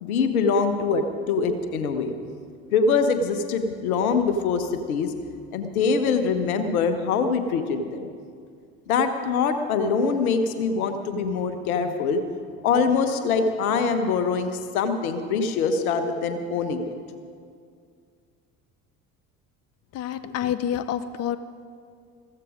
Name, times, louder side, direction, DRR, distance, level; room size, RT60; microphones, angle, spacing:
voice 1, 0.0-2.2 2.7-5.1 5.5-8.1 8.9-12.2 12.6-16.9, left 5 dB, 80° left, 8 dB, 1.2 m, -24 dB
voice 2, 19.9-21.4, left 10 dB, 35° left, 13 dB, 0.6 m, -28 dB
15.0 x 14.5 x 5.1 m, 2.2 s
hypercardioid pair, 60°, 43 cm